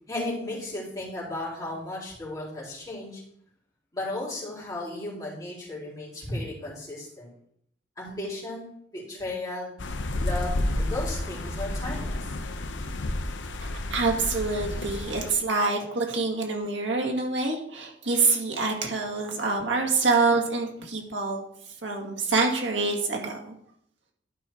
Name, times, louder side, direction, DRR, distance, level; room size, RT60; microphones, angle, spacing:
voice 1, 0.1-3.2 3.9-7.3 8.0-9.7 10.1-12.3, left 1 dB, 20° left, -6 dB, 3.7 m, -35 dB
sound 1, 9.8-15.3, left 1 dB, 75° left, 0.8 m, -31 dB
voice 2, 13.6-21.5 21.8-23.5, right 3 dB, 75° right, 0 dB, 2.2 m, -26 dB
11.5 x 5.1 x 4.6 m, 0.69 s
head